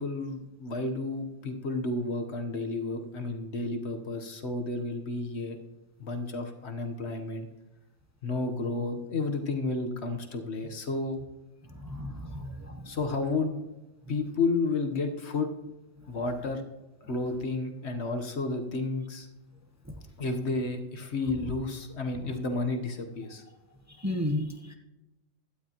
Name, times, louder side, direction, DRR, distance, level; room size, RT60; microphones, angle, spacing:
voice 1, 0.0-5.6 6.0-7.5 8.2-11.2 12.8-13.6 14.1-15.5 16.1-16.6 17.1-19.3 20.2-23.4, left 3 dB, 60° left, 5 dB, 1.4 m, -31 dB
voice 2, 11.8-12.9 24.0-24.7, left 1 dB, 15° right, 3 dB, 0.9 m, -33 dB
16.5 x 12.0 x 3.0 m, 1.0 s
omnidirectional pair, 1.3 m